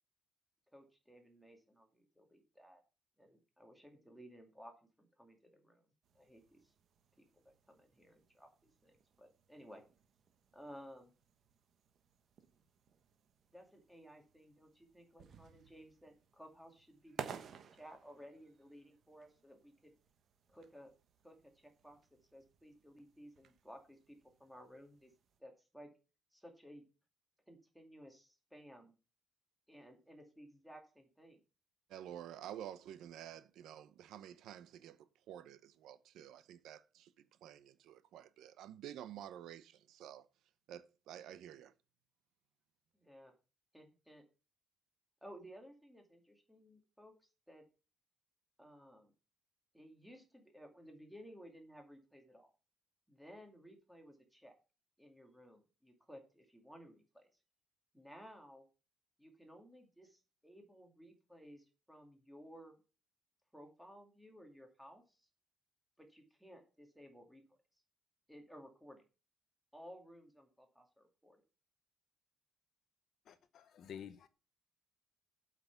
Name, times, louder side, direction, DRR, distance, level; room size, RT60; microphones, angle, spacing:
voice 1, 0.7-2.8 3.2-4.7 5.0-5.9 6.1-6.7 7.4-9.8 10.5-11.1 13.5-19.9 20.5-20.9 21.2-22.0 22.3-25.1 25.4-25.9 26.3-26.8 27.5-28.9 29.7-31.4 42.9-43.3 43.7-44.2 45.2-47.6 48.6-49.1 49.7-52.5 53.1-54.5 55.0-57.3 57.9-58.6 59.2-62.7 63.5-65.3 66.0-67.6 68.3-69.0 69.7-71.4, equal, ahead, 2.3 m, -57 dB
sound 1, 6.0-25.4, right 7 dB, 45° right, 1.2 m, -56 dB
voice 2, 31.9-40.3 40.7-41.7, right 11 dB, 70° right, 0.8 m, -51 dB
voice 3, 73.3-74.3, left 8 dB, 50° left, 0.9 m, -51 dB
8.1 x 6.0 x 7.0 m
cardioid pair, 160°, 0 cm